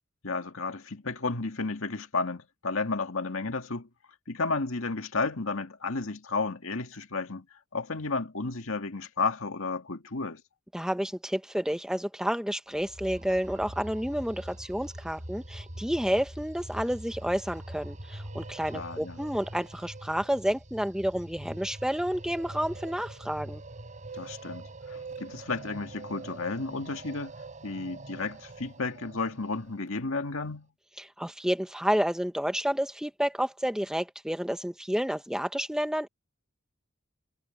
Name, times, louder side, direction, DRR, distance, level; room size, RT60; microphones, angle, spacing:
voice 1, 0.2-3.9 4.3-7.5 7.7-10.4 18.7-19.2 24.1-27.3 27.6-30.7, left 3 dB, 70° left, 2.0 m, -32 dB
voice 2, 10.7-23.6 31.0-36.1, equal, 5° right, 1.2 m, -30 dB
sound 1, 12.8-29.8, right 1 dB, 35° right, 4.4 m, -43 dB
head